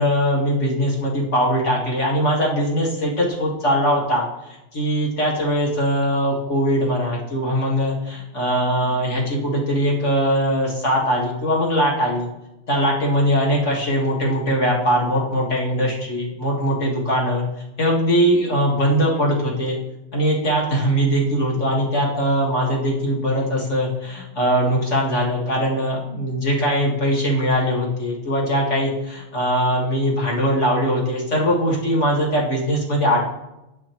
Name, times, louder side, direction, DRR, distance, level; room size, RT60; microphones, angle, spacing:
voice 1, 0.0-4.2 4.7-12.3 12.7-17.4 17.8-19.8 20.1-28.9 29.3-33.2, equal, 35° left, -3 dB, 1.7 m, -21 dB
9.8 x 9.4 x 3.0 m, 0.96 s
omnidirectional pair, 2.4 m